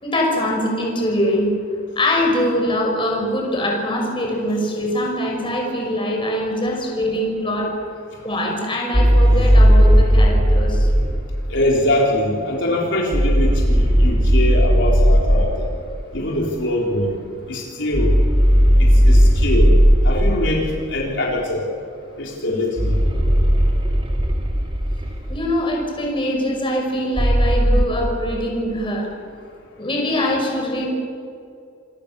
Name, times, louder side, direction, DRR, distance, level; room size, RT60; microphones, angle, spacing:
voice 1, 0.0-1.5 2.0-7.7 8.2-10.9 25.3-29.1 29.8-30.9, left 1 dB, 25° left, 0 dB, 5.8 m, -23 dB
sound 1, 8.9-11.3 13.1-15.6 17.9-20.5 22.8-25.4 27.2-27.8, equal, 25° right, 2.8 m, -15 dB
voice 2, 11.5-15.7 16.1-17.1 17.5-18.1 19.1-19.7 20.0-20.6 20.9-21.6 22.2-23.0, left 1 dB, 65° left, -2 dB, 4.1 m, -22 dB
27.5 x 24.0 x 7.0 m, 2.4 s
head